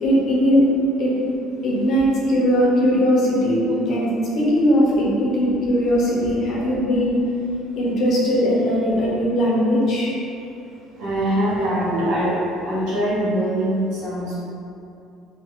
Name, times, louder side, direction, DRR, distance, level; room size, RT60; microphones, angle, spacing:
voice 1, 0.0-0.6 1.0-1.1 1.6-4.1 4.3-7.2 7.8-10.1, equal, 45° left, -5 dB, 0.7 m, -19 dB
voice 2, 11.0-12.4 12.6-14.4, right 1 dB, 85° right, -10 dB, 1.4 m, -22 dB
2.6 x 2.4 x 3.5 m, 2.7 s
cardioid pair, 160°, 0 cm